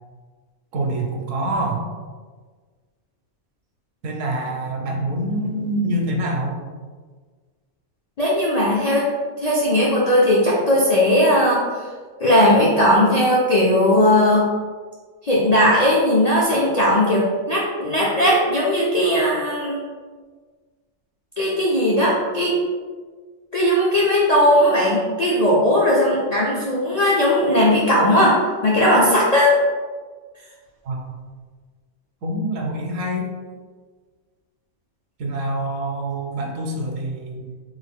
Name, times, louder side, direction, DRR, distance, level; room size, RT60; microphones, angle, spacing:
voice 1, 0.7-1.8 4.0-6.6 30.8-31.1 32.2-33.3 35.2-37.5, right 1 dB, 70° right, 0 dB, 1.0 m, -25 dB
voice 2, 8.2-9.0 9.4-11.6 12.2-14.4 15.2-19.8 21.4-22.6 23.5-29.5, left 1 dB, 70° left, -5 dB, 0.3 m, -17 dB
3.5 x 2.1 x 3.5 m, 1.5 s
omnidirectional pair, 1.4 m